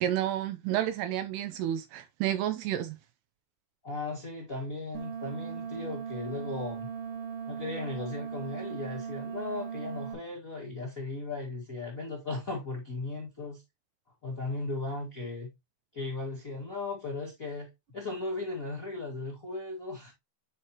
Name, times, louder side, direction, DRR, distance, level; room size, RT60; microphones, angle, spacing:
voice 1, 0.0-3.0, right 12 dB, 80° right, 2.4 m, -30 dB
voice 2, 3.8-6.9 7.5-13.6 14.2-15.5 15.9-20.1, left 3 dB, 40° left, 1.1 m, -37 dB
sound 1, 4.9-10.1, right 7 dB, 65° right, 3.0 m, -38 dB
9.5 x 4.5 x 2.9 m
omnidirectional pair, 5.1 m